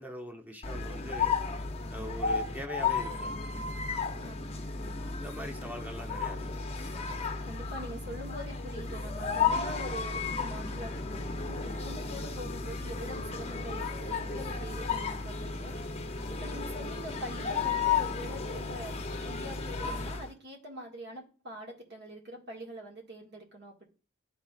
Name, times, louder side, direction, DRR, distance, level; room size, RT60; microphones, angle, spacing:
voice 1, 0.0-1.4 1.9-3.3 5.2-6.6, equal, 10° right, 3 dB, 0.8 m, -42 dB
sound 1, 0.6-20.3, left 5 dB, 35° left, 0.7 m, -33 dB
voice 2, 4.2-4.6 7.4-15.7 16.3-18.9 19.3-23.9, equal, 60° right, 0 dB, 1.8 m, -44 dB
12.0 x 4.1 x 2.4 m, 0.36 s
head